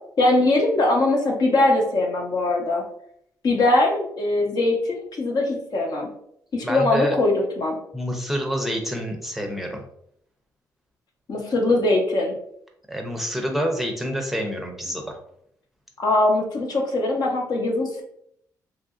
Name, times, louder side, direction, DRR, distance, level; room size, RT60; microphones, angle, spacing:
voice 1, 0.2-2.8 3.4-6.1 6.5-7.8 11.3-12.3 16.0-18.0, left 2 dB, 60° left, 0 dB, 0.8 m, -21 dB
voice 2, 6.6-7.2 7.9-9.8 12.9-15.2, equal, 5° right, 2 dB, 0.6 m, -27 dB
3.0 x 2.6 x 2.4 m, 0.71 s
cardioid pair, 70°, 8 cm